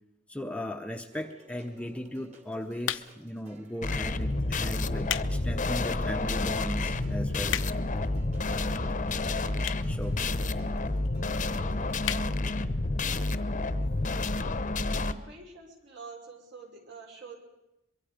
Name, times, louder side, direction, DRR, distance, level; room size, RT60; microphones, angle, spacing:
voice 1, 0.3-7.6 9.3-9.5 9.8-10.2 10.7-10.8, equal, 5° left, 5 dB, 0.8 m, -37 dB
sound 1, 1.1-12.5, right 1 dB, 40° right, 3.4 m, -55 dB
sound 2, 2.8-3.4 4.1-4.3 4.8-5.3 5.8-5.9 6.5-6.6 6.8-6.9 7.1-8.0 8.8-8.9 9.6-10.0 10.3-10.4 10.5-10.6 10.9-11.0 11.3-11.5 12.0-12.3 12.7-12.8 13.0-13.1, left 11 dB, 80° left, 0.7 m, -33 dB
sound 3, 3.8-15.1, left 2 dB, 40° left, 0.9 m, -29 dB
voice 2, 11.9-12.4 13.1-13.5 14.9-17.4, right 4 dB, 65° right, 1 dB, 5.4 m, -47 dB
23.0 x 23.0 x 5.1 m, 0.90 s
head